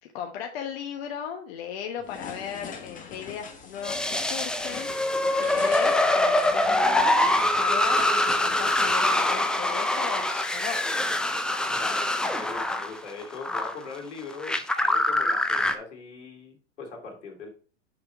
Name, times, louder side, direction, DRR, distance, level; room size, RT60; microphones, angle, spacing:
voice 1, 0.0-10.8, left 8 dB, 55° left, 4 dB, 1.1 m, -37 dB
sound 1, 2.0-9.0, left 5 dB, 20° left, 1.5 m, -43 dB
sound 2, 3.8-13.7 14.3-15.8, left 1 dB, ahead, 0.5 m, -24 dB
voice 2, 11.7-17.5, left 4 dB, 80° left, 2 dB, 2.8 m, -41 dB
6.6 x 6.0 x 4.4 m, 0.40 s
hypercardioid pair, 110°, 36 cm